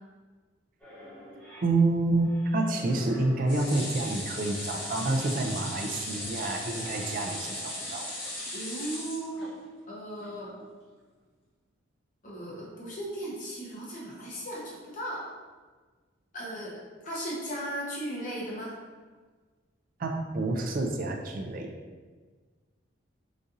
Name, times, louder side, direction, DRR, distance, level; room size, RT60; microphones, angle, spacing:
sound 1, 0.8-8.4, equal, 10° left, 0.9 m, -49 dB
voice 1, 1.6-8.1 20.0-21.7, right 2 dB, 45° right, 2 dB, 0.3 m, -28 dB
sound 2, 3.5-9.8 10.2-10.3 10.6-10.7, left 1 dB, 75° left, 1.4 m, -37 dB
voice 2, 8.5-9.5 9.9-10.5 12.2-15.3 16.3-18.7, right 1 dB, 40° left, -6 dB, 0.8 m, -36 dB
4.0 x 2.5 x 2.5 m, 1.4 s
head